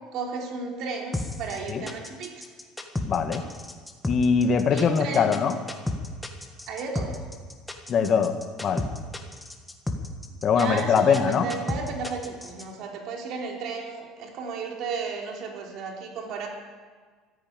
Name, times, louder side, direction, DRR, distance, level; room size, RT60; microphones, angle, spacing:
voice 1, 0.1-2.5 4.7-5.4 6.7-7.2 10.4-16.5, right 5 dB, 60° right, 0 dB, 3.2 m, -34 dB
sound 1, 1.1-12.6, left 2 dB, 5° left, 1.5 m, -32 dB
voice 2, 3.1-3.4 4.1-5.5 7.9-8.8 10.4-11.5, left 6 dB, 40° left, 7 dB, 1.5 m, -22 dB
14.5 x 10.0 x 8.6 m, 1.5 s
cardioid pair, 130°, 0 cm